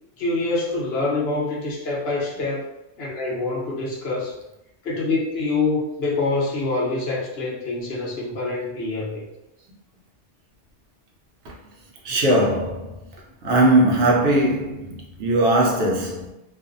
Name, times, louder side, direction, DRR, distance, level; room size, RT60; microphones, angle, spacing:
voice 1, 0.2-2.7 3.0-4.3 4.8-9.2, left 3 dB, 60° left, 0.9 m, -25 dB
voice 2, 12.0-12.9 13.4-16.3, right 1 dB, 75° right, 0.9 m, -20 dB
2.5 x 2.3 x 2.4 m
omnidirectional pair, 1.2 m